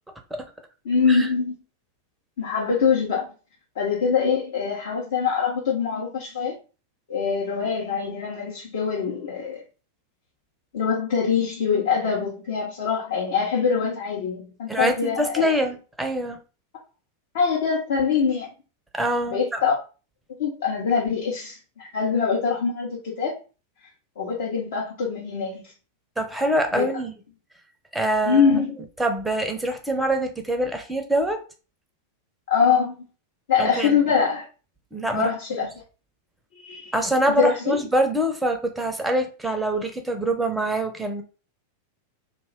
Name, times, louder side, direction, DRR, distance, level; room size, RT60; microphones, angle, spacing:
voice 1, 0.8-1.6 2.4-3.3 3.8-6.5 7.1-9.6 10.7-15.5 17.3-18.5 19.3-19.8 20.4-23.3 24.2-25.7 26.7-26.9 28.3-28.8 32.5-32.9 33.5-34.4 35.1-35.7 36.6-36.9 37.3-37.8, left 6 dB, 55° left, 0.8 m, -23 dB
voice 2, 14.7-16.4 18.9-19.6 26.2-27.1 27.9-28.5 29.0-31.4 33.6-34.1 34.9-35.7 36.9-41.2, right 1 dB, 5° right, 0.6 m, -25 dB
2.5 x 2.3 x 3.3 m
figure-of-eight pair, 90°, 0 cm